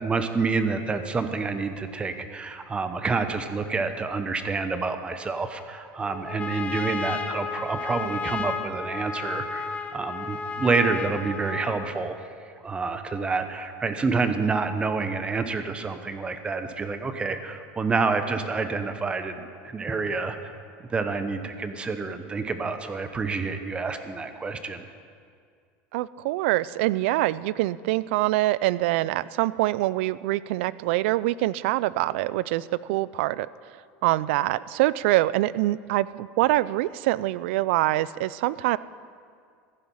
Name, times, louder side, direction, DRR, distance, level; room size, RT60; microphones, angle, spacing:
voice 1, 0.0-12.2 12.6-20.5 20.9-24.9, right 4 dB, 15° right, 9 dB, 0.9 m, -28 dB
Trumpet, 6.0-12.0, left 5 dB, 20° left, 0.8 m, -33 dB
voice 2, 25.9-33.5 34.0-38.8, right 17 dB, 80° right, 19 dB, 0.4 m, -24 dB
14.5 x 10.5 x 5.5 m, 2.2 s
supercardioid pair, 140°, 6 cm